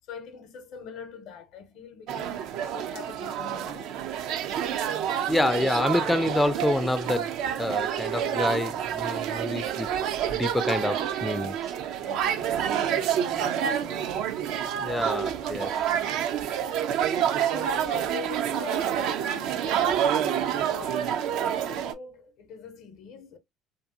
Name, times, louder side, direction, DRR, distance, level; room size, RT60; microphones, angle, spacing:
voice 1, 0.0-2.5 2.7-4.0 12.0-14.3 17.5-21.1 21.3-23.4, left 7 dB, 70° left, 0.6 m, -44 dB
sound 1, 2.1-21.9, right 9 dB, 70° right, 0.3 m, -28 dB
voice 2, 5.3-9.9 10.3-11.5 14.8-15.8, left 1 dB, 10° left, 0.3 m, -27 dB
2.6 x 2.5 x 2.4 m
hypercardioid pair, 65°, 0 cm